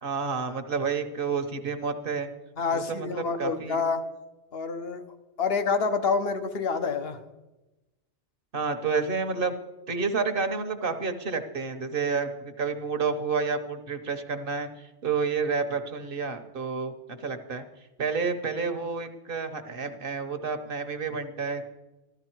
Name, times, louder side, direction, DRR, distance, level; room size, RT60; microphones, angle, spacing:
voice 1, 0.0-2.3 2.7-3.8 8.5-9.5 9.9-16.9 17.2-17.7 18.0-21.6, right 5 dB, 50° right, 8 dB, 1.1 m, -30 dB
voice 2, 2.6-4.0 4.5-5.0 5.4-7.2, left 4 dB, 60° left, 8 dB, 1.2 m, -27 dB
14.5 x 13.0 x 4.5 m, 1.1 s
omnidirectional pair, 1.2 m